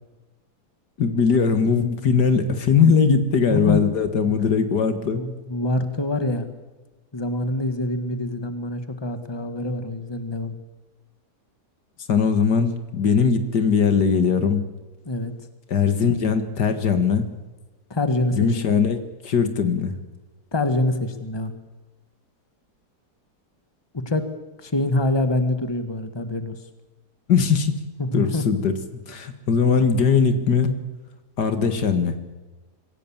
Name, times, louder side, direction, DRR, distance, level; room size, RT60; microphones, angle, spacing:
voice 1, 1.0-5.2 12.1-14.6 15.7-17.3 18.3-19.9 27.3-27.8 28.1-28.7 29.1-30.8 31.4-32.2, left 6 dB, 80° left, 9 dB, 2.2 m, -20 dB
voice 2, 3.5-3.8 5.1-6.5 7.1-10.5 15.1-15.3 17.9-18.5 20.5-21.5 23.9-24.2 24.6-26.6 28.0-28.5, left 2 dB, 15° left, 8 dB, 1.6 m, -25 dB
25.0 x 16.5 x 7.3 m, 1.2 s
omnidirectional pair, 1.8 m